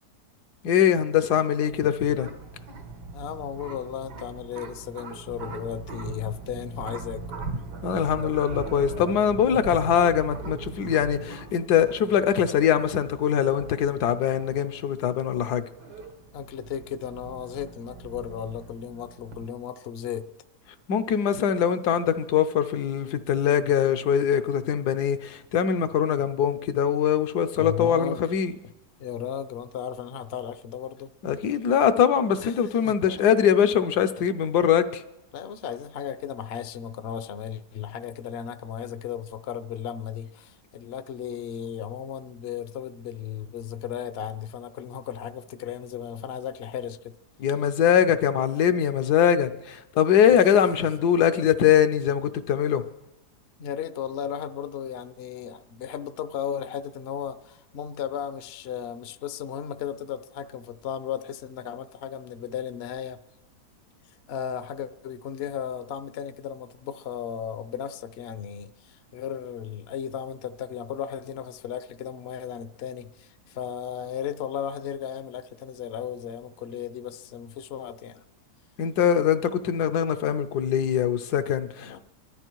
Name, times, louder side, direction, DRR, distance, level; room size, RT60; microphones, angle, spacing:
voice 1, 0.6-2.3 7.8-15.6 20.9-28.6 31.2-35.0 47.4-52.8 78.8-82.0, left 8 dB, 75° left, 1.3 m, -22 dB
sound 1, 1.6-19.4, right 3 dB, 85° right, 2.1 m, -40 dB
voice 2, 3.1-7.2 16.3-20.3 27.5-28.2 29.0-31.1 32.4-32.5 32.8-33.2 35.3-47.1 53.6-63.2 64.3-78.2 81.8-82.0, left 9 dB, 55° left, 0.7 m, -35 dB
23.0 x 13.0 x 4.6 m
omnidirectional pair, 1.7 m